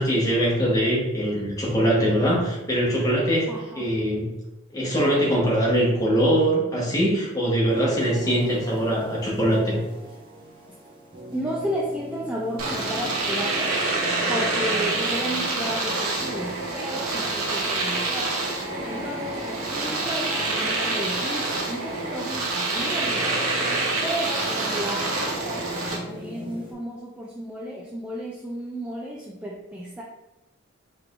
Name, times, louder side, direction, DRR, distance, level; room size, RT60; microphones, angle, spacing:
voice 1, 0.0-3.5 3.7-4.3 4.7-9.8, equal, 15° left, -5 dB, 1.1 m, -22 dB
voice 2, 3.5-3.9 11.3-13.8 14.3-18.3 18.8-23.4 24.0-30.0, equal, 5° right, -4 dB, 0.3 m, -33 dB
sound 1, 7.6-26.7, equal, 25° right, 0.7 m, -40 dB
Domestic sounds home sounds, 12.6-26.0, right 2 dB, 85° right, 0.9 m, -27 dB
4.7 x 3.3 x 2.5 m, 1.0 s
head